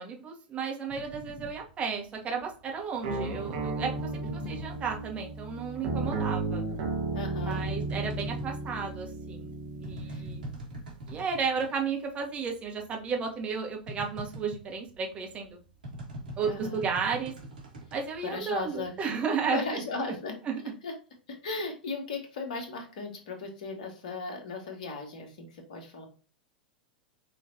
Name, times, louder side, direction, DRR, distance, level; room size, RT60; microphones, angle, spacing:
voice 1, 0.0-6.6 7.4-9.5 9.8-10.6 11.1-15.6 16.4-17.3 17.9-19.8 20.4-20.6, right 5 dB, 25° right, 1 dB, 1.4 m, -33 dB
sound 1, 0.9-5.6 5.9-11.8 12.1-12.2 12.5-18.9, right 1 dB, 75° right, 1.9 m, -43 dB
sound 2, 3.0-10.5, right 3 dB, 50° right, 1.2 m, -34 dB
voice 2, 4.2-4.7 7.1-7.6 10.1-10.3 16.4-16.9 18.2-18.9 19.5-20.4 20.8-20.9 21.4-26.1, left 3 dB, 55° left, 3 dB, 1.5 m, -36 dB
5.6 x 3.1 x 2.8 m, 0.37 s
figure-of-eight pair, 90°, 5 cm